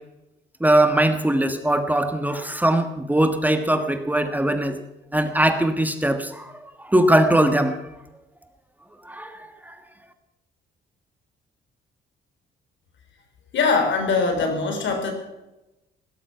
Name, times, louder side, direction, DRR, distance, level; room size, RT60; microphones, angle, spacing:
voice 1, 0.6-4.7 5.1-6.5 6.8-7.8 9.0-9.4 9.7-9.8, right 1 dB, 10° right, 7 dB, 1.5 m, -20 dB
voice 2, 13.5-15.1, left 4 dB, 70° left, 5 dB, 4.2 m, -22 dB
17.0 x 12.5 x 5.8 m, 0.97 s
cardioid pair, 90°, 20 cm